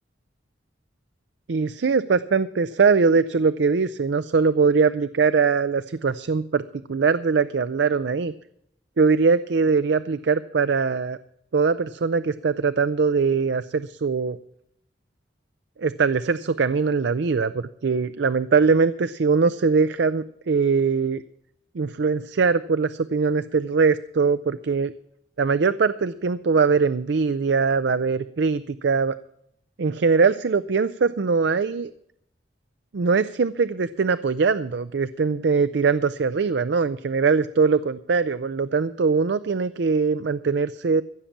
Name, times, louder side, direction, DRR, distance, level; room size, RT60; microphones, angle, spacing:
voice 1, 1.5-6.6 6.9-8.3 9.0-11.2 11.5-14.4 15.8-21.2 21.7-24.9 25.4-29.1 29.8-31.9 32.9-41.0, right 5 dB, 65° right, 14 dB, 0.5 m, -22 dB
15.5 x 7.1 x 7.3 m, 0.72 s
head